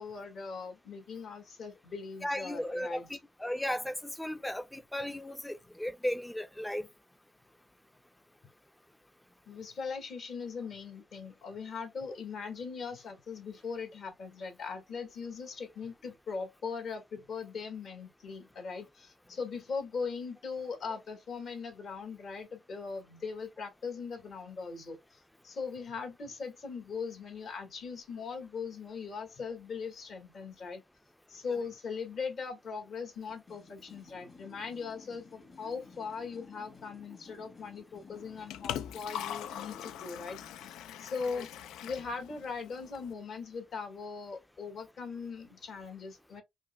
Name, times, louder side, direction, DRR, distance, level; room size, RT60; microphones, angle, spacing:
voice 1, 0.0-3.1 9.5-30.8 31.3-41.5 41.8-46.4, left 5 dB, 60° left, 1.5 m, -40 dB
voice 2, 2.2-6.9, left 1 dB, 5° left, 0.5 m, -35 dB
sound 1, 33.3-40.8, left 3 dB, 45° left, 1.4 m, -55 dB
Liquid, 38.1-43.1, left 10 dB, 85° left, 0.3 m, -42 dB
4.9 x 2.2 x 2.2 m
cardioid pair, 90°, 0 cm